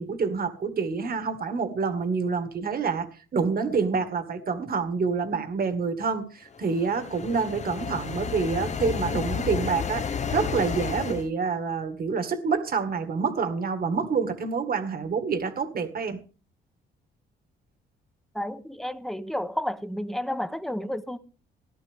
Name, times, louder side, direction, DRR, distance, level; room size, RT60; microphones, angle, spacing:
voice 1, 0.0-3.1 3.3-16.2, right 5 dB, 50° right, 1.9 m, -27 dB
sound 1, 6.6-11.3, left 6 dB, 35° left, 0.9 m, -32 dB
voice 2, 18.3-21.2, equal, ahead, 1.1 m, -31 dB
18.0 x 11.0 x 3.6 m
cardioid pair, 90°, 20 cm